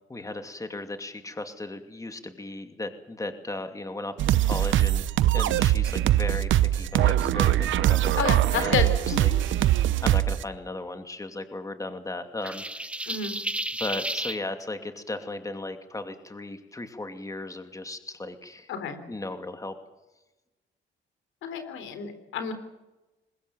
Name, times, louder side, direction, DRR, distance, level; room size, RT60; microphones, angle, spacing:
voice 1, 0.1-5.1 5.3-8.4 8.6-8.7 9.1-9.3 9.6-12.6 13.8-18.7 19.1-19.7, left 2 dB, 15° left, 7 dB, 2.6 m, -36 dB
sound 1, 4.2-10.4, right 13 dB, 80° right, 0.9 m, -22 dB
voice 2, 8.2-9.4 13.1-13.4 18.7-19.0 21.4-22.5, left 6 dB, 85° left, 9 dB, 3.8 m, -30 dB
sound 2, 12.4-14.4, right 1 dB, 5° right, 1.2 m, -32 dB
22.5 x 20.5 x 7.6 m, 1.0 s
cardioid pair, 90°, 20 cm